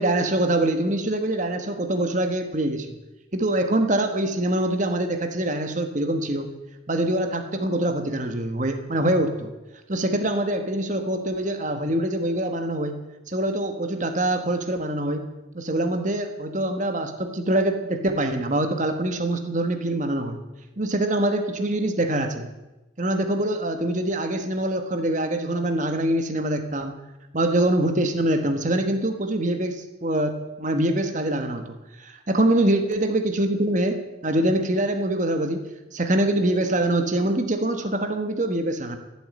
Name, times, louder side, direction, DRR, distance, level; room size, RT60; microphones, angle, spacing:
voice 1, 0.0-2.9 3.3-6.5 6.9-9.5 9.9-13.0 13.3-15.3 15.5-20.4 20.8-22.5 23.0-27.0 27.3-31.6 32.0-35.6 35.9-39.0, right 1 dB, 40° right, 6 dB, 1.4 m, -24 dB
15.0 x 8.0 x 9.8 m, 1.0 s
head